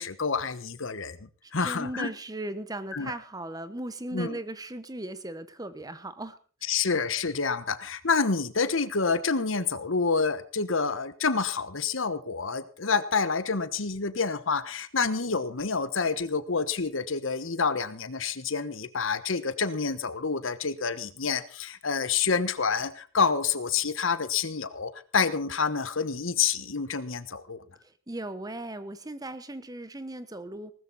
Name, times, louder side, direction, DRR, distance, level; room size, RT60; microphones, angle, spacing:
voice 1, 0.0-2.1 2.9-3.1 4.1-4.4 6.7-27.6, left 5 dB, 70° left, 13 dB, 1.2 m, -28 dB
voice 2, 1.4-6.7 27.8-30.7, right 1 dB, 20° right, 12 dB, 1.1 m, -38 dB
19.0 x 13.5 x 4.2 m, 0.38 s
head